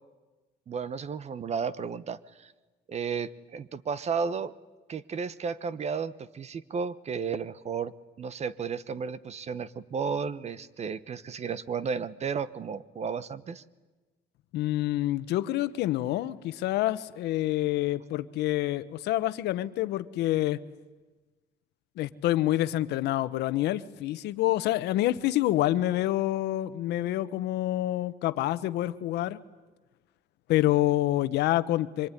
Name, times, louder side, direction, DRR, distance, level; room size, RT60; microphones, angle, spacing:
voice 1, 0.7-2.5 2.9-4.5 4.9-7.9 8.2-13.6, right 6 dB, 40° right, 17 dB, 1.1 m, -33 dB
voice 2, 14.5-20.6 22.0-29.4 30.5-32.1, left 15 dB, 80° left, 13 dB, 1.1 m, -27 dB
24.5 x 24.0 x 10.0 m, 1.2 s
cardioid pair, 110°, 17 cm